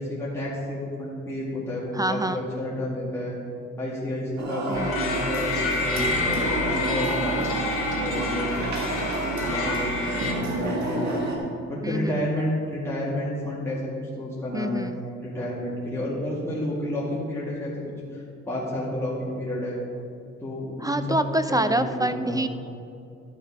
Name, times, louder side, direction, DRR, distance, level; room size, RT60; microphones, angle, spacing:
voice 1, 0.0-3.4 3.8-7.5 8.0-8.7 9.3-11.3 11.7-14.9 15.2-19.8 20.4-21.2 21.5-22.5, left 1 dB, 10° left, -7 dB, 2.1 m, -30 dB
voice 2, 2.0-2.4 4.7-4.9 11.8-12.2 14.5-15.0 20.8-22.5, right 1 dB, 10° right, 10 dB, 0.4 m, -26 dB
sound 1, 4.4-11.4, right 2 dB, 65° right, 1.9 m, -29 dB
sound 2, 4.7-10.3, left 3 dB, 45° left, 1.9 m, -29 dB
12.0 x 6.4 x 4.8 m, 2.4 s
cardioid pair, 90°, 30 cm